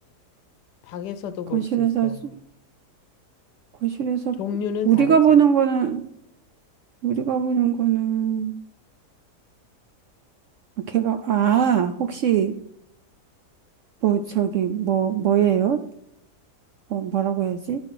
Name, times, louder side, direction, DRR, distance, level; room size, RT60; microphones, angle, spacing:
voice 1, 0.8-2.3 4.4-5.2, left 8 dB, 80° left, 1.2 m, -31 dB
voice 2, 1.5-2.3 3.8-4.3 4.9-6.0 7.0-8.5 10.9-12.6 14.0-15.8 16.9-17.8, right 9 dB, 70° right, 0.7 m, -21 dB
11.0 x 4.2 x 4.8 m
omnidirectional pair, 1.8 m